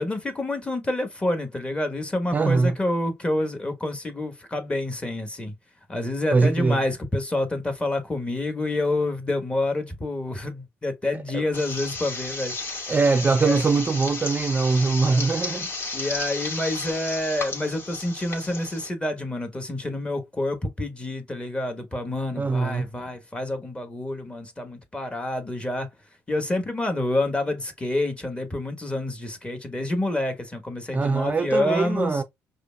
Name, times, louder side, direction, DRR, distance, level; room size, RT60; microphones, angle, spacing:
voice 1, 0.0-5.5 5.9-12.5 13.4-13.6 15.1-15.2 15.9-25.9 26.3-32.2, left 1 dB, 15° left, 1.3 m, -28 dB
voice 2, 2.3-2.7 6.3-6.8 11.3-11.4 12.9-15.7 22.4-22.9 30.9-32.2, right 4 dB, 25° right, 0.4 m, -22 dB
sound 1, 11.5-18.9, left 3 dB, 35° left, 2.1 m, -33 dB
4.9 x 2.5 x 2.2 m
supercardioid pair, 75°, 6 cm